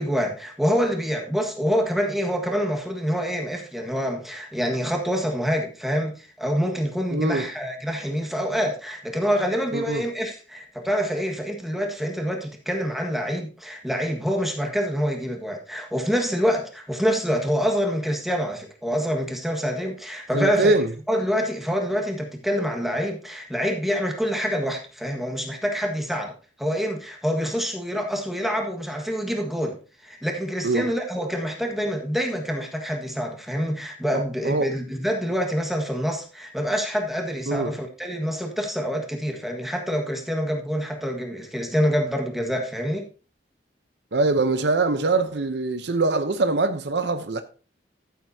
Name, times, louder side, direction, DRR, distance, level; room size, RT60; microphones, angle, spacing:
voice 1, 0.0-20.7 21.1-29.8 30.0-43.1, equal, ahead, 1.6 m, -26 dB
voice 2, 7.1-7.5 9.7-10.0 20.3-20.9 30.6-30.9 34.1-34.7 37.5-37.7 44.1-47.4, right 2 dB, 70° right, 0.8 m, -23 dB
14.0 x 7.7 x 2.8 m
head